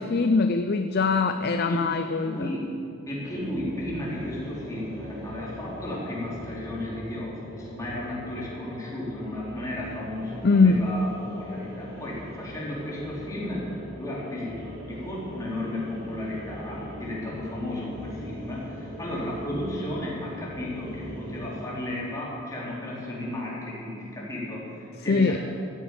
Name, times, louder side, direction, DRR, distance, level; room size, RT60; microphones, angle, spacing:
voice 1, 0.0-2.5 10.4-10.9 25.1-25.4, left 4 dB, 50° left, 8 dB, 0.5 m, -22 dB
voice 2, 1.7-2.7 3.1-11.1 11.4-25.4, left 1 dB, 15° left, -6 dB, 4.0 m, -34 dB
sound 1, 3.2-21.6, equal, 65° right, 4.4 m, -41 dB
15.0 x 8.1 x 8.9 m, 2.8 s
head